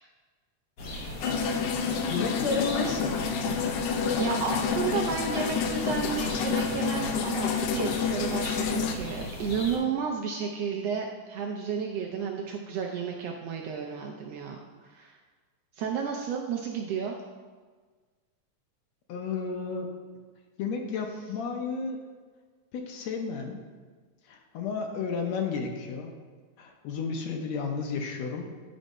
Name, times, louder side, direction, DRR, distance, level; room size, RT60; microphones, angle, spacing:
sound 1, 0.8-9.8, left 1 dB, 55° left, 1.1 m, -38 dB
sound 2, 1.2-8.9, left 6 dB, 90° left, 2.1 m, -29 dB
voice 1, 1.8-3.2 19.1-19.9 20.6-22.0 22.7-23.7 24.3-26.1 26.6-28.5, left 5 dB, 70° left, 3 dB, 1.8 m, -32 dB
voice 2, 4.2-14.6 14.8-15.2 15.7-17.2, right 6 dB, 75° right, 1 dB, 1.5 m, -32 dB
10.0 x 4.1 x 5.3 m, 1.4 s
omnidirectional pair, 3.4 m